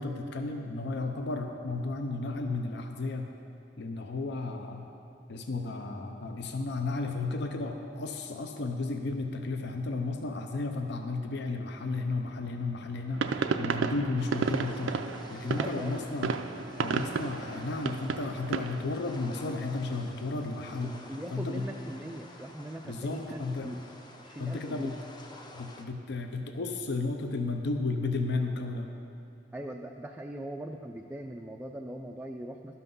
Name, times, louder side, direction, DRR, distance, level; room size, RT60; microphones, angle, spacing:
voice 1, 0.0-3.3 3.8-4.9 5.3-15.0 15.3-16.4 16.8-21.7 22.8-23.8 24.4-24.9 25.5-28.9, left 3 dB, 60° left, 5 dB, 0.6 m, -33 dB
sound 1, 13.1-18.8, right 5 dB, 85° right, 0.4 m, -32 dB
sound 2, 14.2-25.8, left 2 dB, 25° left, 0.6 m, -50 dB
voice 2, 15.6-16.0 20.8-23.8 24.2-24.9 29.5-32.8, right 1 dB, 10° right, 2 dB, 0.3 m, -40 dB
12.5 x 5.8 x 5.4 m, 2.7 s
head